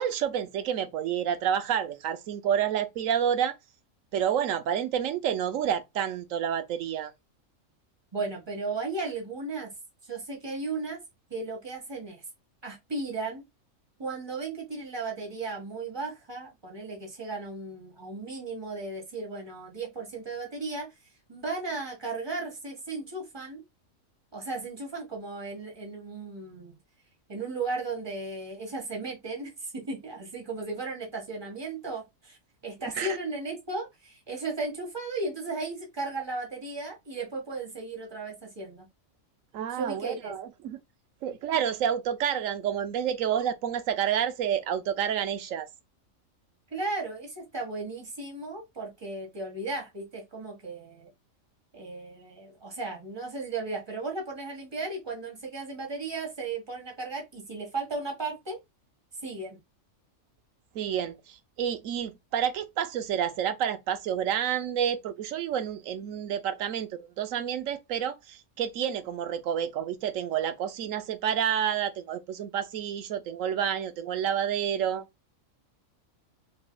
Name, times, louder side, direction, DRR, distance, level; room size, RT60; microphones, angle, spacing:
voice 1, 0.0-3.5 4.1-7.1 33.0-33.1 39.5-40.8 41.2-45.7 60.7-75.1, right 9 dB, 75° right, 1.0 m, -29 dB
voice 2, 8.1-9.7 10.0-11.0 11.3-12.2 12.6-13.4 14.0-20.9 21.3-23.6 24.3-26.8 27.3-32.4 32.6-38.8 39.7-40.3 46.7-51.1 51.7-58.6 59.2-59.6, right 3 dB, 20° right, 1.7 m, -35 dB
5.9 x 3.3 x 2.3 m
omnidirectional pair, 1.4 m